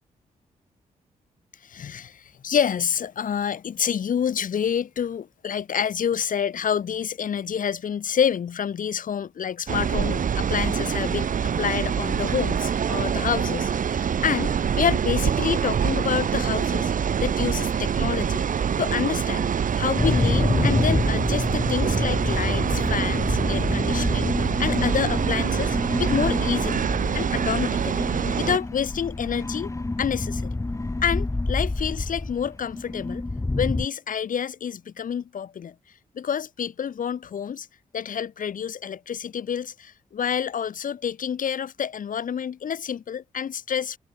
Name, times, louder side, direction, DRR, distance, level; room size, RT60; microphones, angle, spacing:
voice 1, 1.6-11.3 11.6-16.9 17.2-18.5 18.8-19.5 19.8-24.3 24.6-26.9 27.1-28.1 28.4-29.7 30.0-30.5 31.0-33.3 33.6-35.7 36.1-37.7 37.9-44.0, left 8 dB, 65° left, 2.9 m, -28 dB
sound 1, 9.7-28.6, right 7 dB, 65° right, 6.7 m, -25 dB
sound 2, 20.0-33.9, left 2 dB, 20° left, 3.2 m, -27 dB
cardioid pair, 65°, 15 cm